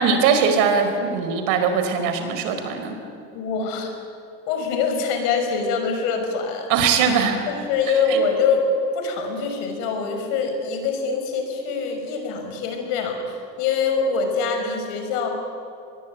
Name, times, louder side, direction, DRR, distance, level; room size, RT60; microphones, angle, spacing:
voice 1, 0.0-3.0 6.7-7.4 8.1-8.2, right 6 dB, 75° right, 7 dB, 4.6 m, -20 dB
voice 2, 3.3-4.0 4.5-6.7 7.5-8.7 8.9-15.3, left 5 dB, 80° left, 4 dB, 6.0 m, -24 dB
24.0 x 21.0 x 9.5 m, 2.7 s
supercardioid pair, 115°, 33 cm